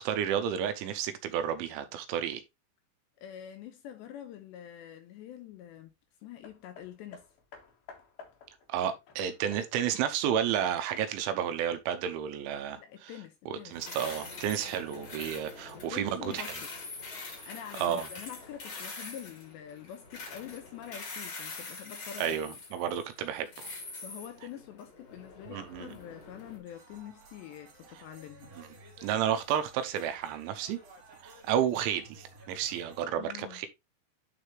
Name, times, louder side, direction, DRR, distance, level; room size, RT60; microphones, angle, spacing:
voice 1, 0.0-2.4 8.7-13.1 13.5-16.4 17.4-17.5 17.8-18.1 22.2-23.7 25.5-25.9 28.6-28.7 29.0-30.8 31.2-33.7, right 9 dB, 85° right, 3.1 m, -31 dB
voice 2, 3.2-5.9 6.2-7.2 12.8-14.2 15.7-16.7 17.5-22.6 24.0-28.5 33.2-33.7, left 10 dB, 75° left, 2.7 m, -46 dB
Hammer, 6.4-11.2 12.0-12.1, left 5 dB, 60° left, 2.9 m, -53 dB
sound 1, 13.7-26.6, left 3 dB, 35° left, 2.2 m, -44 dB
sound 2, 26.6-33.0, right 2 dB, 60° right, 4.5 m, -55 dB
11.0 x 4.2 x 3.2 m
omnidirectional pair, 5.7 m